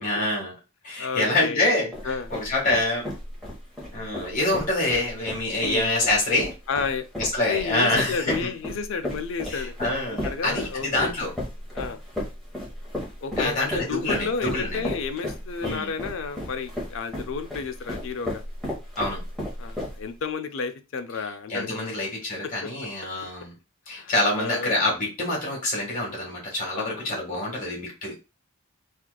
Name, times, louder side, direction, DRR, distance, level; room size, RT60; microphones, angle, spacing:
voice 1, 0.0-0.5 0.8-1.9 2.3-3.0 3.9-6.5 7.2-8.5 9.5-11.3 13.4-14.3 14.5-14.8 15.6-15.9 19.0-19.2 21.5-23.5 23.9-28.2, left 1 dB, 40° left, -1 dB, 1.6 m, -26 dB
voice 2, 1.0-1.7 2.0-2.3 5.6-5.9 6.7-7.1 7.5-9.8 10.1-11.1 11.7-12.0 13.2-18.4 19.6-21.9 22.4-22.7 24.0-24.7 26.7-27.7, left 5 dB, 65° left, 7 dB, 0.4 m, -32 dB
sound 1, 1.9-20.2, left 1 dB, ahead, 1.2 m, -34 dB
4.4 x 2.4 x 2.2 m, 0.28 s
head